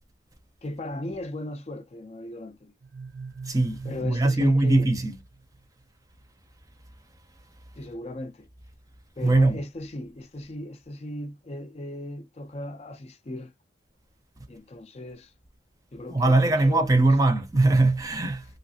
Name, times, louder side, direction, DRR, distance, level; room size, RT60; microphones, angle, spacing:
voice 1, 0.6-2.7 3.8-4.9 7.8-8.5 9.2-13.5 14.5-15.3 15.9-17.2, left 1 dB, 35° left, 0.4 m, -36 dB
sound 1, 2.8-5.6, right 4 dB, 85° right, 0.7 m, -43 dB
voice 2, 3.5-5.2 9.2-9.6 16.1-18.4, right 2 dB, 20° right, 0.6 m, -21 dB
3.2 x 2.6 x 2.7 m
head